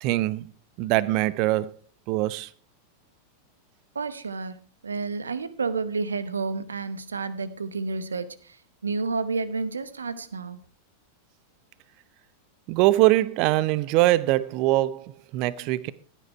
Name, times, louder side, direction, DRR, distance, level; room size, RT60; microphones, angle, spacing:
voice 1, 0.0-0.5 0.8-1.8 2.1-2.5 12.7-15.9, right 17 dB, 45° right, 0.7 m, -23 dB
voice 2, 3.9-10.6, right 4 dB, 75° right, 1.0 m, -30 dB
15.0 x 9.2 x 4.6 m
figure-of-eight pair, 90°, 0 cm